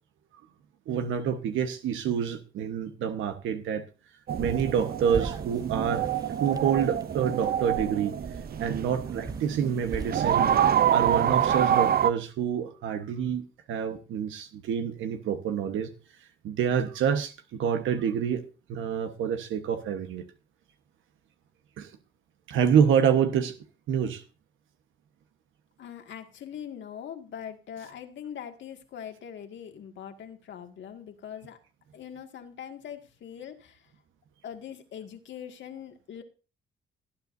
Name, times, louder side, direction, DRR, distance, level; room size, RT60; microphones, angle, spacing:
voice 1, 0.9-3.8 4.4-6.1 6.4-8.1 8.6-10.5 10.9-15.9 16.4-18.4 18.7-20.2 21.8-21.9 22.5-23.5 23.9-24.2, right 8 dB, 80° right, 7 dB, 1.2 m, -27 dB
sound 1, 4.3-12.1, right 3 dB, 20° right, 0.8 m, -41 dB
sound 2, 4.3-12.1, right 9 dB, 50° right, 0.6 m, -26 dB
voice 2, 25.8-31.6 31.9-33.9 34.4-36.2, left 9 dB, 70° left, 5 dB, 2.0 m, -42 dB
18.5 x 9.7 x 2.7 m, 0.34 s
cardioid pair, 90°, 20 cm